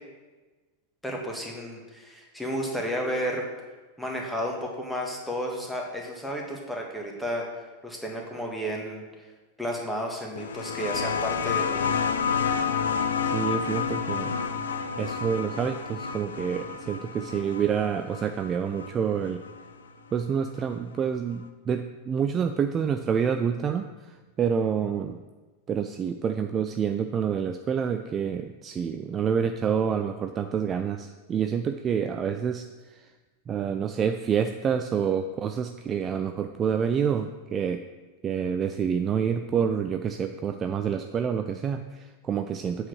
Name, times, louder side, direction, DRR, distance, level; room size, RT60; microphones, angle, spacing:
voice 1, 1.0-3.4 4.0-7.5 7.8-9.0 9.6-11.9, equal, 5° left, 0 dB, 1.6 m, -32 dB
sound 1, 10.4-19.6 20.8-20.9, left 6 dB, 65° left, 0.6 m, -30 dB
voice 2, 13.2-14.4 15.0-19.4 20.1-25.2 25.7-33.1 33.5-37.8 38.2-42.9, right 7 dB, 25° right, 7 dB, 0.4 m, -28 dB
8.3 x 4.8 x 6.3 m, 1.3 s
figure-of-eight pair, 90°, 0 cm